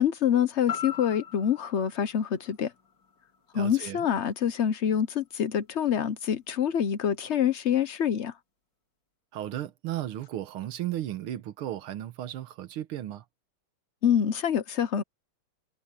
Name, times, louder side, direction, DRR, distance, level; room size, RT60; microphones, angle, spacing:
voice 1, 0.0-2.7 3.5-8.3 14.0-15.0, left 9 dB, 85° left, 0.6 m, -26 dB
sound 1, 0.7-4.8 5.2-5.3, left 8 dB, 55° left, 4.4 m, -41 dB
voice 2, 3.5-4.1 9.3-13.2, right 12 dB, 90° right, 1.9 m, -35 dB
omnidirectional pair, 2.3 m